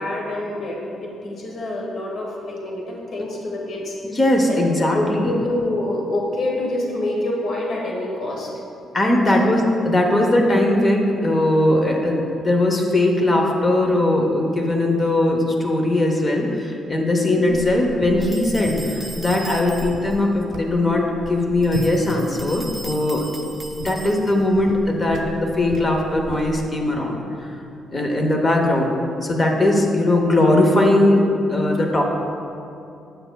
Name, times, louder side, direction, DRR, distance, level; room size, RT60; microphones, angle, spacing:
voice 1, 0.0-4.0 4.5-4.6 4.9-8.5 9.2-9.5 10.0-10.1 17.2-17.6 29.6-29.7 30.1-30.2, left 1 dB, 55° left, -2 dB, 1.3 m, -27 dB
voice 2, 4.1-5.3 8.9-23.4 23.8-27.2 27.9-28.9 29.2-32.1, left 1 dB, 30° left, 1 dB, 0.8 m, -19 dB
sound 1, 17.5-26.8, right 3 dB, 80° right, 0.5 m, -36 dB
sound 2, 18.2-20.2 21.6-24.5, right 2 dB, 5° right, 0.5 m, -38 dB
7.7 x 6.8 x 2.3 m, 2.7 s
cardioid pair, 90°, 0 cm